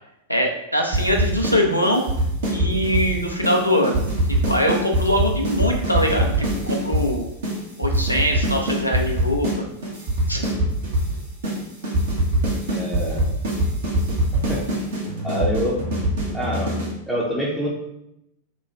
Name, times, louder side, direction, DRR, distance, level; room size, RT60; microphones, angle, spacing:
voice 1, 0.3-2.0 2.5-4.0 4.3-7.3 7.8-9.5 10.3-10.5, equal, 90° left, 1 dB, 0.5 m, -22 dB
sound 1, 0.9-1.6 1.8-3.1 3.4-3.6 3.8-7.0 7.4-7.5 7.8-9.6 9.8-11.1 11.4-11.6 11.8-16.9, right 1 dB, 60° right, 0.9 m, -22 dB
voice 2, 12.7-13.3 14.5-14.6 15.2-15.9 16.3-17.7, equal, ahead, -6 dB, 0.6 m, -26 dB
3.0 x 2.3 x 4.0 m, 0.82 s
figure-of-eight pair, 90°, 0 cm